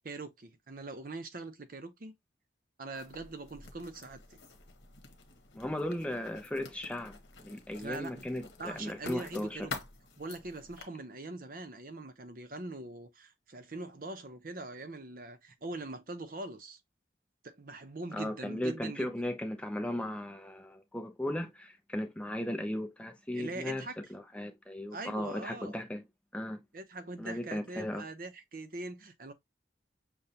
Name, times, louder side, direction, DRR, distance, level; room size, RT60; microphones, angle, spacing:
voice 1, 0.0-2.1 2.8-4.4 7.8-8.3 8.6-9.7 10.2-16.8 17.4-19.3 23.3-23.9 24.9-25.8 26.7-29.3, right 2 dB, 50° right, 0.7 m, -42 dB
Writing, 2.9-10.8, left 4 dB, 70° left, 1.1 m, -48 dB
voice 2, 5.5-9.7 18.1-26.0 26.3-26.6 27.2-28.0, left 1 dB, 5° left, 0.5 m, -36 dB
6.7 x 2.3 x 2.8 m
head